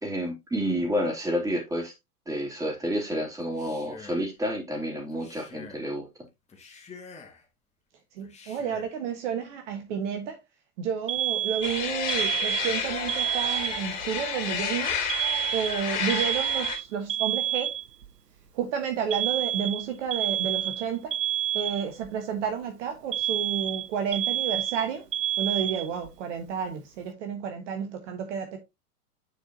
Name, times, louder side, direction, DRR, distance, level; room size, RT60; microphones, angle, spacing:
voice 1, 0.0-1.9 2.3-6.1, equal, 5° right, 2.8 m, -29 dB
Male speech man speaking, 3.4-4.3 5.1-5.9 6.5-7.5 8.2-9.0, left 4 dB, 15° left, 1.9 m, -47 dB
voice 2, 8.2-10.4 10.8-15.0 15.5-17.7 18.5-21.1 21.5-25.0 25.4-28.6, right 7 dB, 50° right, 1.4 m, -31 dB
Alarm, 11.1-14.1 15.1-18.1 19.1-22.1 23.1-26.1, right 11 dB, 85° right, 0.8 m, -29 dB
sound 1, 11.6-16.8, left 6 dB, 40° left, 3.5 m, -31 dB
9.9 x 4.8 x 2.8 m
figure-of-eight pair, 95°, 47 cm